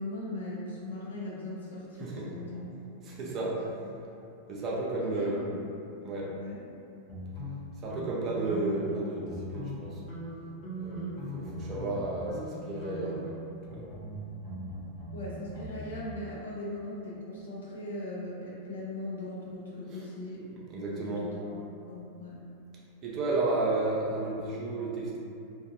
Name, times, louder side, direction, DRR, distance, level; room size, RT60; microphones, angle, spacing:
voice 1, 0.0-2.7 3.2-3.5 5.0-5.7 6.3-6.6 15.1-20.5 21.0-21.6 21.9-22.4, left 1 dB, 65° left, -6 dB, 0.6 m, -39 dB
voice 2, 3.0-3.7 4.5-5.4 6.0-6.4 7.8-10.0 10.8-13.4 13.7-13.9 19.9-20.0 20.5-21.3 23.0-25.2, right 2 dB, 30° right, -4 dB, 0.5 m, -32 dB
sound 1, 7.1-9.0 9.2-9.8 10.1-12.0 12.3-12.5 12.8-15.8, right 1 dB, 45° left, 1.0 m, -40 dB
2.6 x 2.4 x 2.5 m, 2.7 s
figure-of-eight pair, 90°, 0 cm